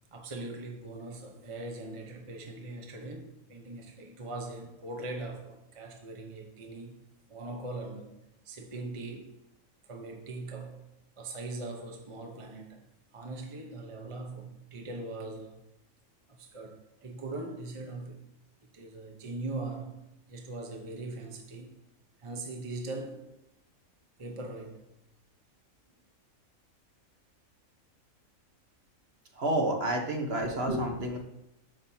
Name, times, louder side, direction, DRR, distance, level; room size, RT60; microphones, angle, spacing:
voice 1, 0.1-7.0 7.3-8.2 8.4-9.4 9.9-10.8 11.2-12.8 13.1-15.6 16.4-18.2 18.7-21.7 22.2-23.3 24.2-24.9, right 2 dB, 25° right, 0.9 m, -41 dB
voice 2, 29.3-31.2, right 1 dB, 50° right, 1.3 m, -29 dB
8.7 x 7.4 x 2.8 m
omnidirectional pair, 1.4 m